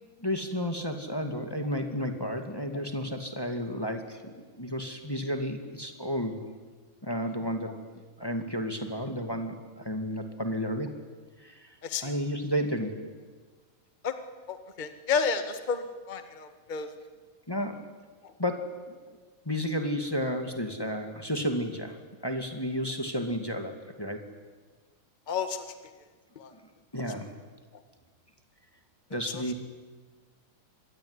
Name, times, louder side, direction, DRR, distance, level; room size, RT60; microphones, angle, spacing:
voice 1, 0.2-6.4 7.0-7.8 8.2-10.9 11.4-11.7 12.0-13.0 17.5-17.8 18.4-19.0 19.5-24.3 26.9-27.3 29.1-29.5, equal, 10° left, 5 dB, 1.7 m, -32 dB
voice 2, 14.5-16.9 25.3-25.6 26.3-26.5, left 5 dB, 30° left, 8 dB, 0.8 m, -31 dB
26.0 x 22.0 x 9.9 m, 1.4 s
omnidirectional pair, 3.9 m